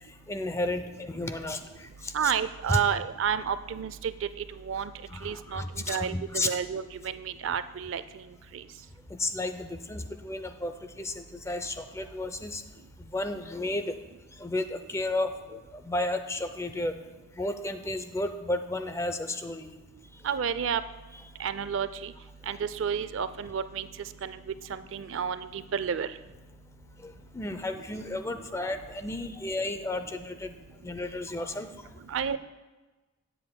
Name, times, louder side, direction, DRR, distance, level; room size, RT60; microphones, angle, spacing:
voice 1, 0.3-2.3 2.7-2.8 5.1-6.5 9.1-12.6 13.0-14.0 14.4-16.9 17.4-19.7 27.0-30.6 30.8-31.7, left 2 dB, 15° left, 9 dB, 0.5 m, -33 dB
voice 2, 2.1-4.1 4.6-4.9 5.2-8.0 20.2-20.8 21.4-22.1 22.5-23.9 24.2-24.4 24.7-26.1 32.1-32.4, right 7 dB, 70° right, 13 dB, 0.4 m, -30 dB
17.5 x 7.8 x 2.2 m, 1.2 s
head